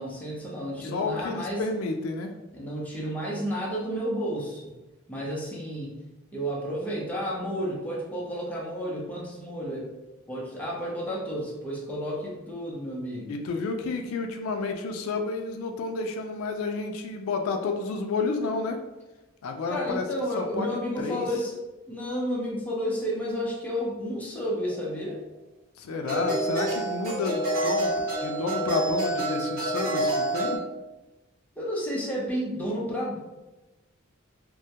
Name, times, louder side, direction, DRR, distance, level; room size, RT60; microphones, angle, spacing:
voice 1, 0.0-1.6 2.5-4.7 5.1-5.9 6.3-9.9 10.3-13.3 19.7-21.6 21.9-25.2 31.6-33.2, equal, 10° left, -5 dB, 0.6 m, -31 dB
voice 2, 0.8-2.4 13.3-18.8 19.4-20.1 20.4-21.3 25.8-27.9 28.2-30.6, left 4 dB, 85° left, 5 dB, 0.3 m, -30 dB
sound 1, 24.7-24.8 26.1-30.6, right 1 dB, 45° right, 0.6 m, -28 dB
2.2 x 2.1 x 2.7 m, 1.1 s
head